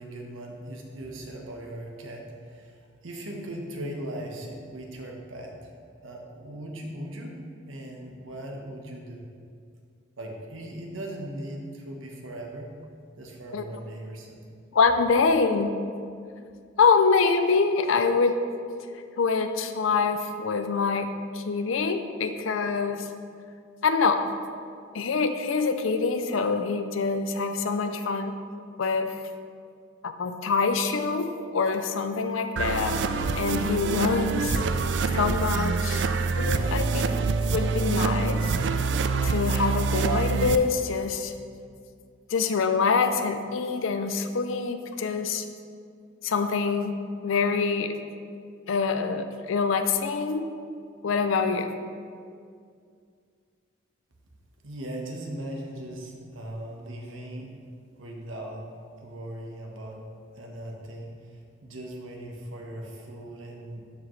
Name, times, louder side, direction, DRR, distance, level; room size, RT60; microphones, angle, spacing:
voice 1, 0.0-5.7 6.0-7.4 7.7-9.2 10.2-12.7 13.2-14.4 54.6-57.5 58.0-58.7 59.0-60.0 60.4-63.9, right 1 dB, 85° right, 0 dB, 1.1 m, -39 dB
voice 2, 14.7-15.7 16.8-18.4 19.2-21.1 21.3-23.1 23.8-24.3 24.9-28.4 28.8-29.2 30.0-33.0 33.3-34.6 35.1-36.1 36.4-37.2 37.5-38.5 39.2-41.3 42.3-45.5 46.2-47.0 47.2-47.9 48.7-50.5 51.0-51.7, left 4 dB, 85° left, 9 dB, 0.5 m, -25 dB
sound 1, 32.6-40.6, right 4 dB, 60° right, 0.3 m, -26 dB
12.0 x 4.9 x 3.2 m, 2.2 s
head